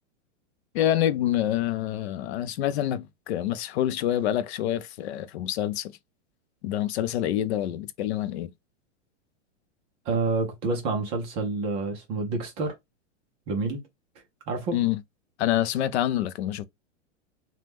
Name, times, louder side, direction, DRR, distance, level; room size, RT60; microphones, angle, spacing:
voice 1, 0.7-5.9 6.6-8.5 14.7-15.0 15.4-16.7, left 12 dB, 60° left, 0.5 m, -26 dB
voice 2, 10.1-12.7 13.5-13.8 14.5-14.7, right 3 dB, 15° right, 0.3 m, -28 dB
2.9 x 2.1 x 3.4 m
supercardioid pair, 150°, 38 cm